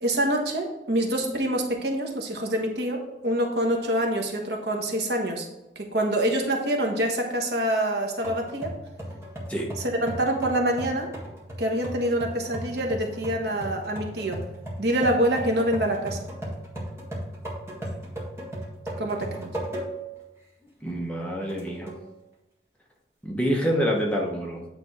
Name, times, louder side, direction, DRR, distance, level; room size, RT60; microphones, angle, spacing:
voice 1, 0.0-5.5 5.7-8.7 9.8-11.1 11.6-14.4 14.8-16.2 19.0-19.5, right 1 dB, 70° right, 2 dB, 1.2 m, -26 dB
sound 1, 8.2-20.2 20.6-20.7 21.5-22.1, right 1 dB, 15° right, 1.7 m, -37 dB
voice 2, 20.8-21.9 23.2-24.6, equal, 5° left, -2 dB, 1.1 m, -26 dB
9.0 x 3.5 x 4.8 m, 0.98 s
head